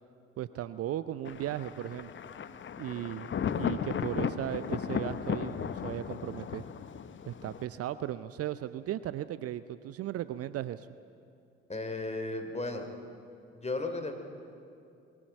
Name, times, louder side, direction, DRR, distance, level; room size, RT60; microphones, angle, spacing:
voice 1, 0.4-2.1 2.8-6.6 7.3-10.9, right 12 dB, 45° right, 15 dB, 0.6 m, -36 dB
Thunder, 1.2-7.6, left 7 dB, 35° left, 1.0 m, -35 dB
voice 2, 11.7-12.9 13.5-14.1, left 2 dB, 20° left, 5 dB, 3.2 m, -34 dB
21.5 x 18.5 x 9.0 m, 2.5 s
figure-of-eight pair, 45°, 33 cm